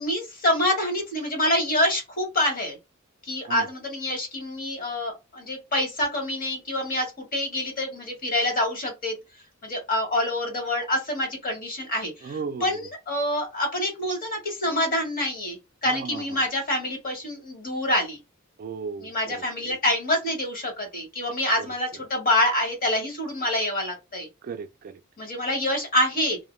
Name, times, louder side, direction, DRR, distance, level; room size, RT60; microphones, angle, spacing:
voice 1, 0.0-2.8 3.2-9.2 9.6-18.2 19.0-24.3 25.2-26.4, left 1 dB, 45° left, 1.2 m, -26 dB
voice 2, 12.2-12.8 15.9-16.2 18.6-19.8 21.6-21.7 24.4-25.0, right 5 dB, 40° right, 0.3 m, -36 dB
2.7 x 2.1 x 3.1 m
head